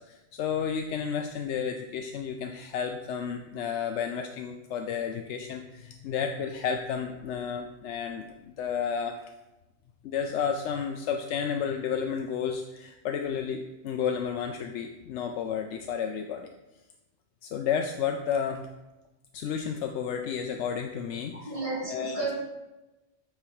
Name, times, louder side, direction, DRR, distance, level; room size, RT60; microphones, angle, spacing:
voice 1, 0.0-9.2 10.0-16.5 17.4-18.7 19.3-21.6 21.9-22.3, left 7 dB, 85° left, 4 dB, 0.9 m, -32 dB
voice 2, 21.3-22.3, right 2 dB, 30° right, -4 dB, 1.9 m, -32 dB
8.8 x 3.9 x 4.8 m, 1.0 s
omnidirectional pair, 1.1 m